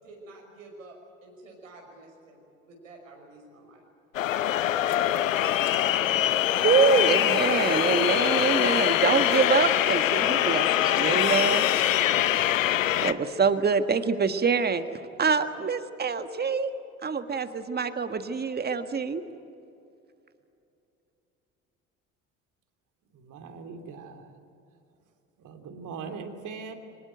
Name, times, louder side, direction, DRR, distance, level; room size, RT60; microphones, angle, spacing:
voice 1, 0.0-2.4 2.7-3.8, right 2 dB, 80° right, 1 dB, 5.7 m, -49 dB
sound 1, 4.1-13.1, left 12 dB, 80° left, 0.8 m, -23 dB
voice 2, 6.6-11.6 13.0-14.8 15.2-16.7 17.0-19.2, right 5 dB, 25° right, 10 dB, 1.6 m, -25 dB
voice 3, 23.1-24.3 25.4-26.7, right 5 dB, 50° right, 6 dB, 3.0 m, -40 dB
24.5 x 20.5 x 9.2 m, 2.7 s
figure-of-eight pair, 60°, 38 cm